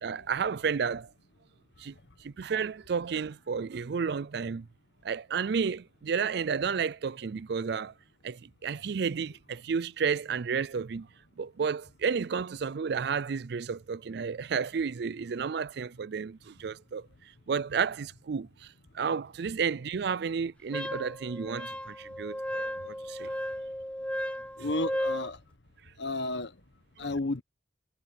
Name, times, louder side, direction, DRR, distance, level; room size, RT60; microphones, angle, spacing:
voice 1, 0.0-1.1 1.8-4.7 5.0-7.9 8.2-11.1 11.4-23.4 27.0-27.1, right 6 dB, 65° right, 0.4 m, -32 dB
Wind instrument woodwind instrument, 20.7-25.3, equal, 5° left, 1.0 m, -35 dB
voice 2, 24.6-25.4 26.0-26.5 27.0-27.4, left 2 dB, 80° left, 1.5 m, -32 dB
head